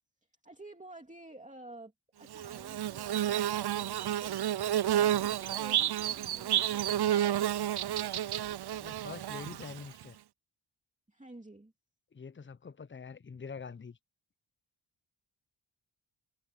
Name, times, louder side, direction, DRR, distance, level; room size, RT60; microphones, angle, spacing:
voice 1, 0.4-7.4 11.1-11.7, right 2 dB, 15° right, 2.6 m, -52 dB
Bird / Buzz, 2.3-10.0, right 11 dB, 55° right, 0.5 m, -31 dB
voice 2, 5.0-5.6 8.7-10.2 12.1-14.0, left 5 dB, 25° left, 0.6 m, -46 dB
wide cardioid pair, 80°, 47 cm